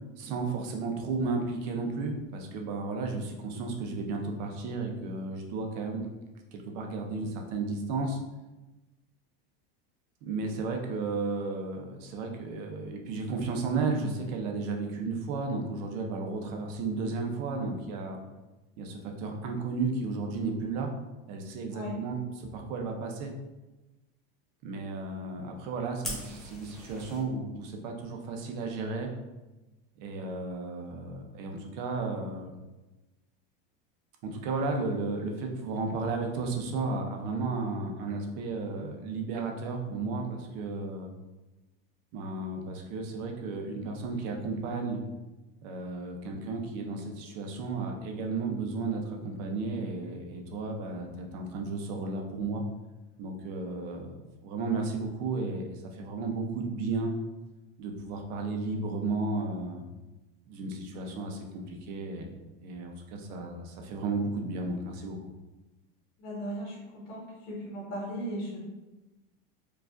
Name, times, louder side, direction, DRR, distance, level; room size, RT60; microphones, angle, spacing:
voice 1, 0.2-6.1 6.5-8.2 10.2-18.2 18.8-20.9 21.3-23.3 24.6-29.1 30.0-32.5 34.2-41.1 42.1-45.0 45.6-52.6 53.2-54.1 54.4-57.1 57.8-59.8 60.5-62.3 62.6-65.2, right 3 dB, 50° right, 2 dB, 0.6 m, -33 dB
Fire, 26.0-27.2, equal, ahead, 0.5 m, -40 dB
voice 2, 66.2-68.6, equal, 80° left, -5 dB, 1.4 m, -37 dB
4.6 x 2.4 x 2.4 m, 1.1 s
supercardioid pair, 170°, 29 cm